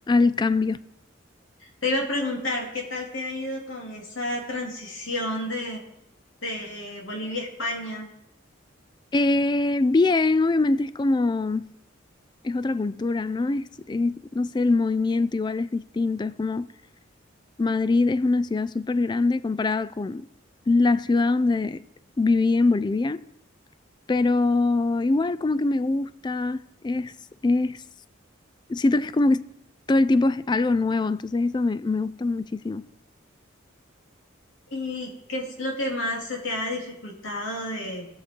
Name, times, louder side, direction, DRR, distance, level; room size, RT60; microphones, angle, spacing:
voice 1, 0.1-0.8 9.1-11.7 12.4-16.7 17.6-20.3 20.7-21.8 22.2-23.2 24.1-27.1 27.4-27.8 28.7-29.4 29.9-32.8, left 3 dB, 20° left, 0.3 m, -23 dB
voice 2, 1.6-5.8 6.4-8.1 34.7-38.1, left 1 dB, 80° left, 2.8 m, -30 dB
19.0 x 6.7 x 4.5 m
head